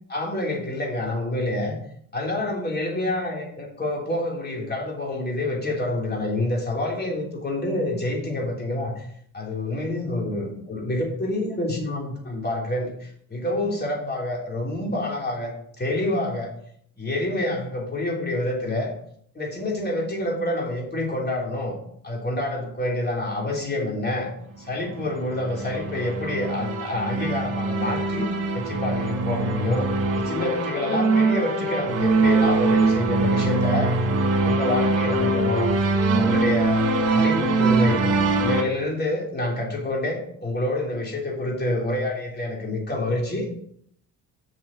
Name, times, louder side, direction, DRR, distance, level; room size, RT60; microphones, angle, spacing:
voice 1, 0.1-1.7 2.1-9.0 9.3-16.5 17.0-18.9 19.3-21.8 22.0-24.3 24.6-28.3 28.5-29.9 30.1-33.9 34.4-35.7 36.1-38.0 38.4-43.5, left 1 dB, 30° left, -1 dB, 3.5 m, -27 dB
sound 1, 24.8-38.6, right 3 dB, 45° right, 2.6 m, -23 dB
7.2 x 7.1 x 5.1 m, 0.66 s
cardioid pair, 85°, 34 cm